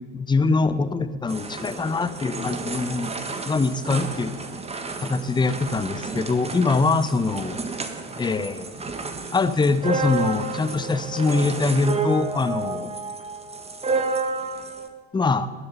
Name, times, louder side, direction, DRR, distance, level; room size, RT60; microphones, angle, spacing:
voice 1, 0.1-3.1 3.4-4.3 5.0-7.6 8.2-8.7 9.3-12.9 15.1-15.5, left 3 dB, 10° left, 13 dB, 0.8 m, -23 dB
sound 1, 1.3-14.9, right 4 dB, 15° right, 1.5 m, -31 dB
20.0 x 11.0 x 5.6 m, 1.4 s
figure-of-eight pair, 75°, 39 cm